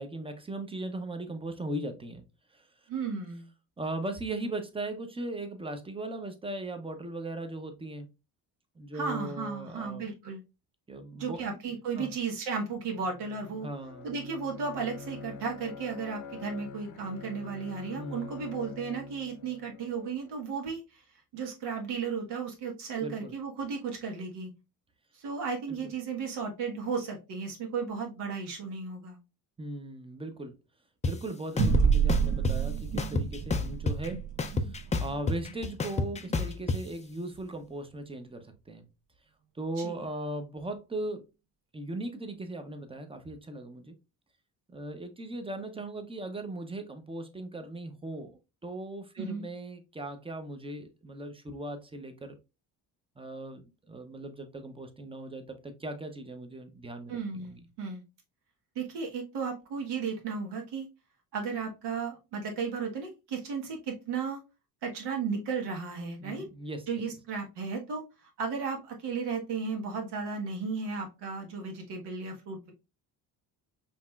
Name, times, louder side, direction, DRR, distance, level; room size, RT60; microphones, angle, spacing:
voice 1, 0.0-2.2 2.5-2.9 3.8-8.1 8.8-10.2 10.9-11.6 12.0-12.1 13.6-14.1 17.9-18.4 23.0-23.3 25.7-25.9 29.6-30.5 31.1-38.9 39.5-41.3 41.7-43.9 44.7-52.4 53.2-57.6 66.2-66.9, right 1 dB, 15° right, 0.7 m, -38 dB
voice 2, 2.9-3.5 8.9-10.4 11.2-13.7 14.0-21.0 21.3-24.5 25.1-29.2 39.8-39.9 49.2-49.4 57.1-58.0 58.7-60.9 61.3-64.4 64.8-66.4 66.9-68.0 68.4-72.7, right 5 dB, 75° right, 1.5 m, -34 dB
Bowed string instrument, 12.8-20.6, left 4 dB, 50° left, 0.7 m, -46 dB
sound 1, 31.0-31.1 31.6-32.5 33.0-34.1 34.4-36.8, left 3 dB, 20° left, 0.4 m, -29 dB
sound 2, 31.6-36.4, right 6 dB, 60° right, 1.4 m, -29 dB
5.2 x 3.0 x 2.3 m
cardioid pair, 100°, 41 cm